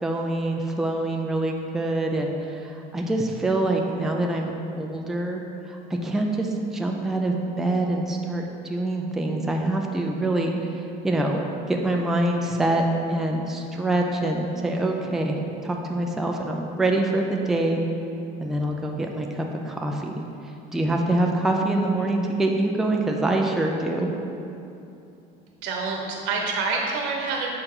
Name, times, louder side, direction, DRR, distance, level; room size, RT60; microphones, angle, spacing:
voice 1, 0.0-15.4 15.6-17.8 18.4-20.2 20.7-24.1, right 2 dB, ahead, 1 dB, 0.4 m, -25 dB
voice 2, 25.6-27.5, right 4 dB, 85° right, 0 dB, 1.1 m, -27 dB
6.5 x 4.5 x 3.7 m, 2.8 s
cardioid pair, 135°, 19 cm